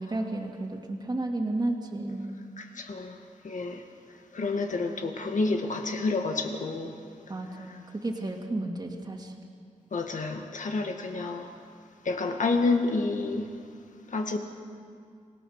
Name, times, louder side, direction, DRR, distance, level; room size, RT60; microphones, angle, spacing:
voice 1, 0.0-2.4 7.3-9.3, right 2 dB, 30° right, 0 dB, 2.3 m, -32 dB
voice 2, 2.6-3.2 3.4-3.8 4.3-7.0 9.9-11.5 12.0-13.5 14.1-14.4, left 3 dB, 70° left, 4 dB, 2.0 m, -29 dB
28.0 x 18.0 x 6.6 m, 2.3 s
wide cardioid pair, 115°, 13 cm